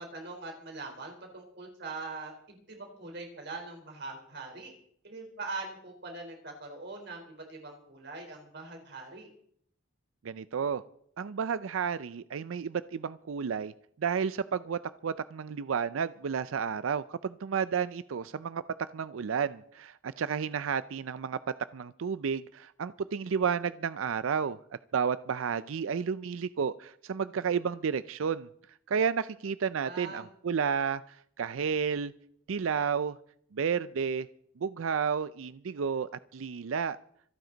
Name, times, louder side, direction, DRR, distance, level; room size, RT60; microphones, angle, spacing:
voice 1, 0.0-4.7 5.0-9.3 29.8-30.3, right 3 dB, 55° right, 2 dB, 4.0 m, -42 dB
voice 2, 10.2-10.8 11.2-13.7 14.0-18.6 18.9-21.4 21.7-24.6 24.9-28.5 28.9-32.1 32.5-33.2 33.5-34.3 34.6-37.0, right 6 dB, 85° right, 15 dB, 0.5 m, -31 dB
26.5 x 9.5 x 4.0 m, 0.67 s
head